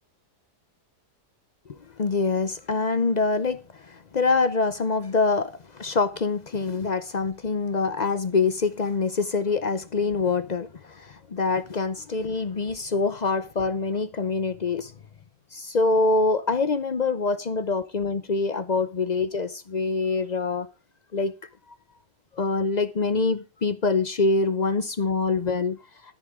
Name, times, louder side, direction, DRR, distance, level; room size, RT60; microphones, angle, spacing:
voice 1, 1.7-14.9 15.5-20.7 21.1-21.3 22.4-25.8, left 4 dB, 55° left, 0.4 m, -25 dB
13.5 x 10.0 x 3.6 m
omnidirectional pair, 1.7 m